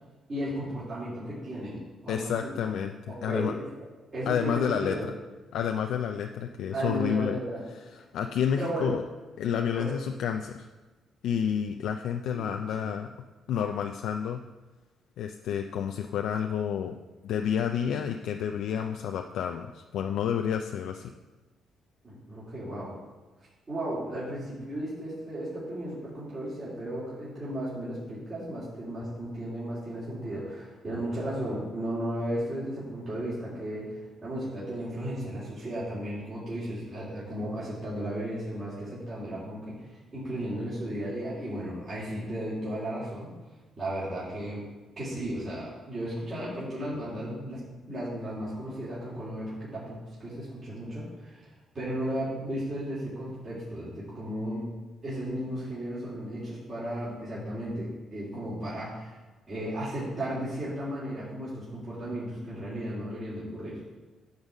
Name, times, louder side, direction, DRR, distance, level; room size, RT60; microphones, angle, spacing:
voice 1, 0.3-2.5 3.1-3.7 4.1-5.1 6.7-7.6 8.5-8.9 9.7-9.9 12.3-12.9 22.0-23.0 23.7-33.9 34.2-39.8 40.1-43.3 43.8-44.7 45.0-47.6 47.9-51.5 51.7-54.7 55.0-59.1 59.5-63.8, right 1 dB, 40° right, -9 dB, 3.2 m, -35 dB
voice 2, 2.1-3.5 4.3-5.0 5.5-7.4 7.9-9.0 9.4-10.7 11.2-13.1 13.5-14.4 15.2-16.9 17.2-21.1, left 8 dB, 80° left, 4 dB, 0.4 m, -30 dB
10.5 x 4.0 x 7.1 m, 1.2 s
cardioid pair, 90°, 0 cm